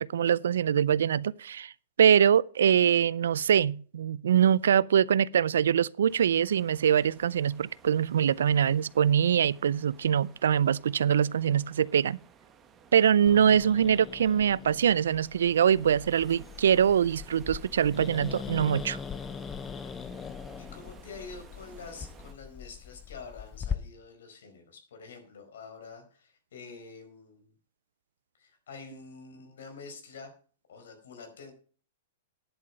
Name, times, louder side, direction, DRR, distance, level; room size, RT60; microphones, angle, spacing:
voice 1, 0.0-1.7 2.0-12.2 12.9-19.0, right 8 dB, 80° right, 0.4 m, -23 dB
sound 1, 6.1-22.3, right 7 dB, 20° right, 1.2 m, -55 dB
Growling, 13.3-23.8, left 7 dB, 20° left, 0.6 m, -41 dB
voice 2, 20.6-27.5 28.4-30.3 30.7-31.5, left 4 dB, 80° left, 4.7 m, -47 dB
10.5 x 8.3 x 5.5 m
hypercardioid pair, 145°, 0 cm